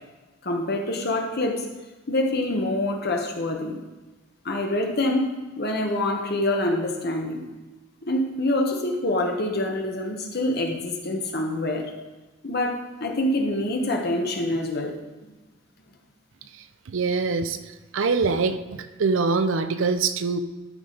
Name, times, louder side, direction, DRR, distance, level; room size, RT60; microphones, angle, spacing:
voice 1, 0.4-1.6 2.1-3.8 4.4-7.4 8.1-11.9 12.4-14.9, left 1 dB, 50° left, 2 dB, 1.2 m, -26 dB
voice 2, 16.9-17.6 17.9-20.4, right 4 dB, 70° right, 10 dB, 0.5 m, -24 dB
13.0 x 5.0 x 3.9 m, 1.2 s
head